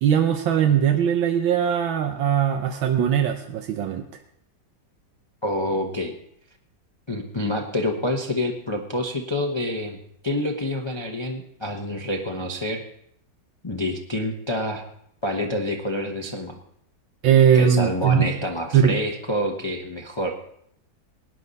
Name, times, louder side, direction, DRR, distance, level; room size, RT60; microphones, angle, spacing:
voice 1, 0.0-4.0 17.2-18.3 18.7-18.9, right 8 dB, 90° right, 4 dB, 1.6 m, -20 dB
voice 2, 5.4-6.1 7.1-10.0 10.2-12.8 13.6-14.8 15.2-16.6 17.5-20.3, left 1 dB, 20° left, 1 dB, 0.7 m, -27 dB
18.5 x 10.0 x 4.1 m, 0.70 s
omnidirectional pair, 2.1 m